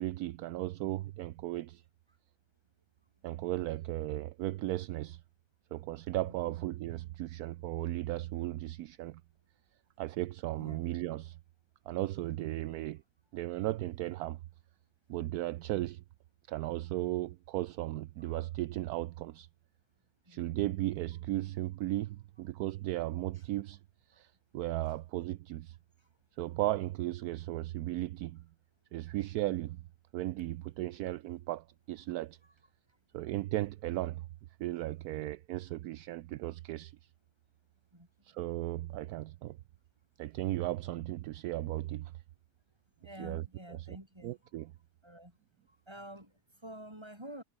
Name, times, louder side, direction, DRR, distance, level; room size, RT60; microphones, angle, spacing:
voice 1, 0.0-1.8 3.2-5.2 5.7-9.2 10.0-11.4 11.9-13.0 13.3-14.4 15.1-16.0 16.5-19.5 20.3-23.8 24.1-25.8 26.4-28.5 28.9-29.8 30.1-32.4 33.1-34.3 34.6-37.0 38.2-39.6 40.2-42.1 43.2-43.4 43.9-44.0 44.2-44.7, right 15 dB, 75° right, 1.1 m, -36 dB
voice 2, 6.2-6.6 10.6-10.9 18.2-18.4 20.2-20.4 23.4-23.5 24.8-24.9 26.0-26.1 37.9-38.1 43.0-44.4 45.0-45.4 45.7-47.4, right 1 dB, 15° right, 6.0 m, -49 dB
omnidirectional pair, 1.7 m